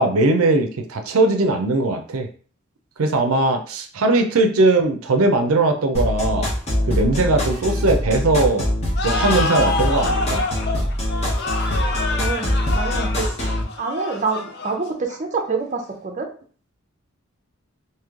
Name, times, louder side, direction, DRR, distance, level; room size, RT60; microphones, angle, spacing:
voice 1, 0.0-2.3 3.0-6.5 6.8-8.7 9.0-10.4, right 2 dB, 85° right, 6 dB, 0.6 m, -19 dB
sound 1, 5.9-13.6, left 1 dB, 30° left, 1.0 m, -23 dB
sound 2, 9.0-15.4, left 3 dB, 55° left, 0.6 m, -27 dB
voice 2, 12.2-13.3 13.8-16.3, right 4 dB, 35° right, 3 dB, 0.6 m, -26 dB
3.1 x 2.8 x 3.6 m, 0.43 s
head